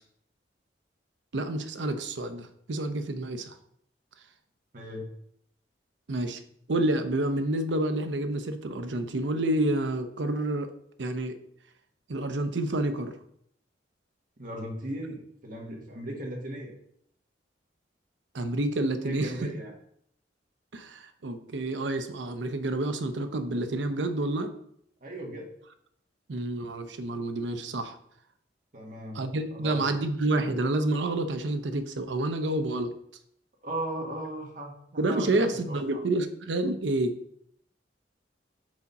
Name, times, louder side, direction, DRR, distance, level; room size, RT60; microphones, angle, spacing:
voice 1, 1.3-3.5 6.1-6.4 6.7-10.7 11.0-11.3 12.1-13.1 18.3-19.5 20.7-24.5 26.3-28.0 29.1-32.9 35.0-37.2, right 2 dB, 85° right, 8 dB, 0.6 m, -29 dB
voice 2, 4.7-5.1 14.4-16.7 19.0-19.7 25.0-25.5 28.7-29.2 29.5-29.8 33.6-36.0, right 1 dB, 50° right, 0 dB, 1.4 m, -37 dB
4.9 x 4.0 x 5.3 m, 0.69 s
head